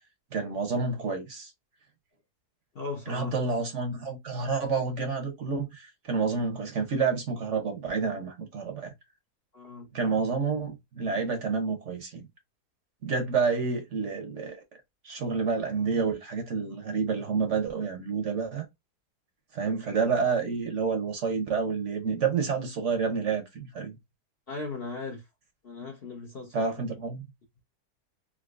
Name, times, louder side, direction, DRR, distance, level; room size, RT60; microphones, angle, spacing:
voice 1, 0.3-1.5 3.1-8.9 9.9-12.3 13.0-14.6 15.0-18.7 19.5-24.0 26.5-27.2, right 5 dB, 55° right, 0.9 m, -29 dB
voice 2, 2.7-3.3 9.5-10.1 24.5-25.2 25.6-26.9, left 3 dB, 50° left, 0.7 m, -38 dB
3.8 x 2.8 x 2.3 m
omnidirectional pair, 1.7 m